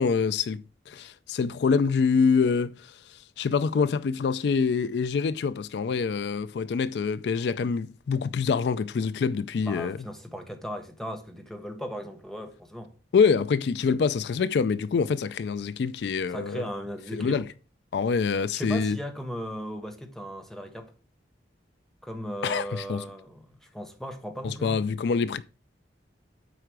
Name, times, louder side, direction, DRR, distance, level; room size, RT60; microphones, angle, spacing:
voice 1, 0.0-10.0 13.1-16.7 17.1-17.5 17.9-19.0 22.4-23.0 24.4-25.4, left 5 dB, 65° left, 0.4 m, -25 dB
voice 2, 9.6-12.9 16.3-17.5 18.5-20.9 22.0-24.9, equal, ahead, 1.0 m, -37 dB
8.0 x 4.8 x 4.7 m
head